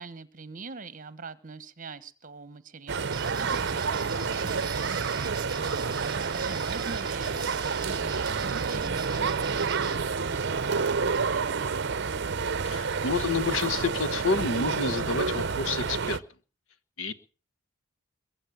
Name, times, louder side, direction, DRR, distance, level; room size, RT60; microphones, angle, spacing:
voice 1, 0.0-5.7 6.0-12.0, right 4 dB, 40° right, 1.2 m, -44 dB
sound 1, 2.9-16.2, right 5 dB, 60° right, 0.7 m, -29 dB
sound 2, 3.1-10.0, right 4 dB, 20° right, 2.5 m, -41 dB
voice 2, 12.6-16.2 17.0-17.1, left 4 dB, 75° left, 1.2 m, -29 dB
22.5 x 8.4 x 7.4 m
head